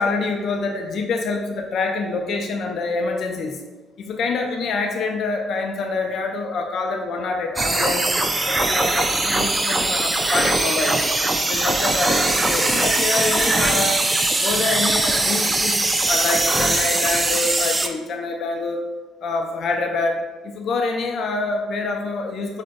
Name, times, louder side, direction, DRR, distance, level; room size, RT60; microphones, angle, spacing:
voice 1, 0.0-3.6 4.0-8.1 8.5-11.1 11.4-14.0 14.3-18.8 19.2-22.6, left 3 dB, 60° left, 2 dB, 0.4 m, -26 dB
sound 1, 7.6-17.9, right 2 dB, 20° right, 0.3 m, -21 dB
4.7 x 2.1 x 2.5 m, 1.3 s
supercardioid pair, 75°, 0 cm